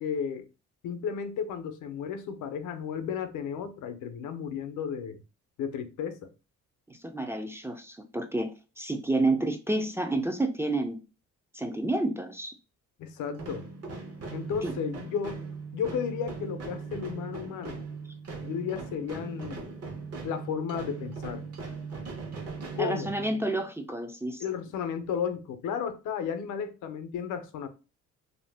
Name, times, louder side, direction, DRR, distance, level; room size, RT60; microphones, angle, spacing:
voice 1, 0.0-0.5 0.8-5.2 5.6-6.3 13.0-13.7 14.3-15.5 15.7-17.8 18.4-19.7 20.2-21.5 22.7-23.1 24.4-27.7, left 7 dB, 80° left, 0.6 m, -33 dB
voice 2, 6.9-11.0 11.5-12.5 14.6-14.7 22.8-24.4, right 2 dB, 10° right, 0.4 m, -30 dB
sound 1, 13.4-23.5, right 4 dB, 50° right, 1.0 m, -39 dB
2.6 x 2.1 x 3.3 m
cardioid pair, 90°, 30 cm